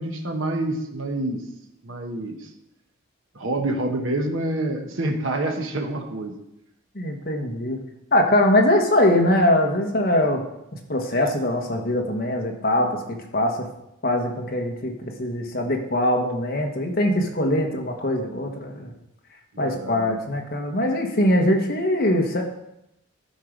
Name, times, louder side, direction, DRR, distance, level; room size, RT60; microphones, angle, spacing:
voice 1, 0.0-1.4 1.8-2.5 3.3-6.4 19.5-20.1, right 1 dB, 60° right, 2 dB, 1.1 m, -27 dB
voice 2, 6.9-7.8 8.1-10.4 10.9-13.7 14.0-18.9 19.6-22.4, left 1 dB, 45° left, 2 dB, 1.3 m, -22 dB
12.0 x 4.7 x 5.2 m, 0.85 s
head